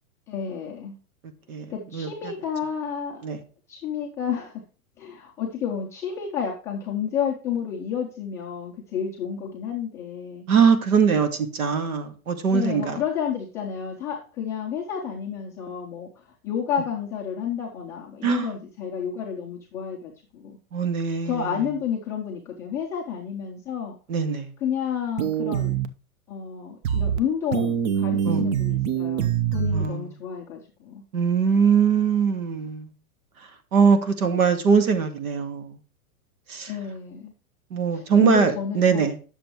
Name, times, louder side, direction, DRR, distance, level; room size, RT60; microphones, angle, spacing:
voice 1, 0.3-1.0 1.7-3.3 3.7-4.6 5.0-10.5 12.5-16.1 16.4-20.6 21.2-24.0 24.6-25.8 26.3-31.0 36.7-37.3 37.9-39.1, left 8 dB, 5° left, -5 dB, 0.3 m, -30 dB
voice 2, 1.5-2.3 3.2-3.4 10.5-13.0 18.2-18.5 20.7-21.5 24.1-24.5 28.3-28.4 29.7-30.1 31.1-32.9 33.7-35.7 36.5-36.7 37.7-39.1, right 6 dB, 75° right, 8 dB, 1.9 m, -22 dB
sound 1, 25.2-25.9 26.8-27.2 27.5-29.9, right 8 dB, 50° right, 0.8 m, -24 dB
10.0 x 6.9 x 3.0 m, 0.36 s
hypercardioid pair, 145°, 43 cm